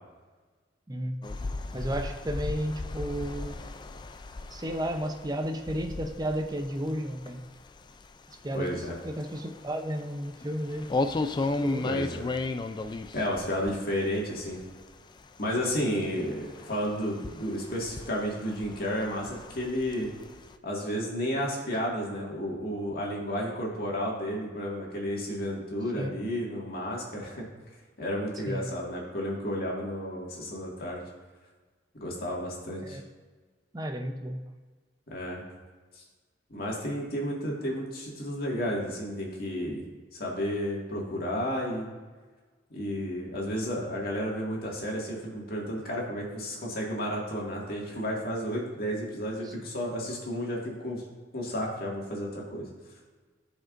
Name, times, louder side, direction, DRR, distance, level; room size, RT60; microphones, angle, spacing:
voice 1, 0.9-1.2 1.7-3.6 4.5-7.4 8.4-10.9 11.6-11.8 26.0-26.1 28.5-28.7 32.8-33.0 33.7-34.4 49.4-49.5, equal, 20° right, 5 dB, 0.7 m, -33 dB
sound 1, 1.2-14.8 15.2-20.5, left 3 dB, 25° left, 0.3 m, -36 dB
voice 2, 8.5-9.0 11.8-12.3 13.1-14.6 15.4-20.1 20.6-27.5 28.0-31.0 31.9-33.0 35.1-35.4 36.0-36.1 36.5-39.8 40.1-41.9 42.7-51.0 51.3-52.7, equal, 55° left, -3 dB, 2.0 m, -32 dB
15.0 x 5.2 x 2.6 m, 1.4 s
head